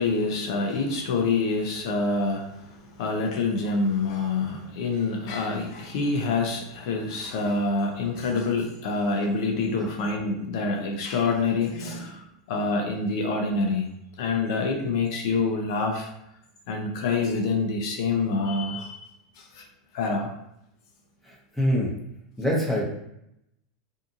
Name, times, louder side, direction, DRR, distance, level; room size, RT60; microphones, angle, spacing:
voice 1, 0.0-13.9 14.2-16.1 16.7-19.1 19.4-19.6 19.9-20.3, left 3 dB, 70° left, 2 dB, 0.6 m, -26 dB
voice 2, 21.2-21.9 22.4-22.8, equal, 5° left, -5 dB, 0.8 m, -25 dB
2.7 x 2.5 x 2.5 m, 0.80 s
supercardioid pair, 135°, 3 cm